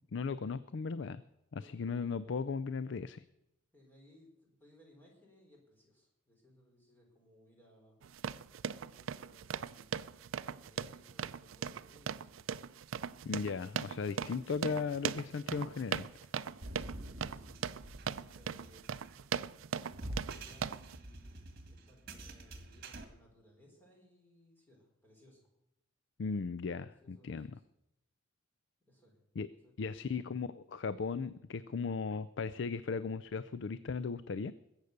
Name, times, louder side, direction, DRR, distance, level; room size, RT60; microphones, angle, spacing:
voice 1, 0.1-1.2 1.5-3.2 13.2-16.1 26.2-27.6 29.4-29.5 29.8-34.5, left 5 dB, 60° left, 16 dB, 0.4 m, -37 dB
voice 2, 1.5-2.1 3.7-8.0 8.7-12.4 16.3-17.7 18.0-18.9 19.9-25.4 26.8-27.4 28.9-29.2 29.5-30.1, equal, 10° left, -1 dB, 4.2 m, -64 dB
sound 1, 8.0-21.0, right 7 dB, 80° right, 0.4 m, -39 dB
sound 2, 16.6-23.0, right 1 dB, 50° right, 1.7 m, -47 dB
20.5 x 8.2 x 6.6 m, 0.86 s
head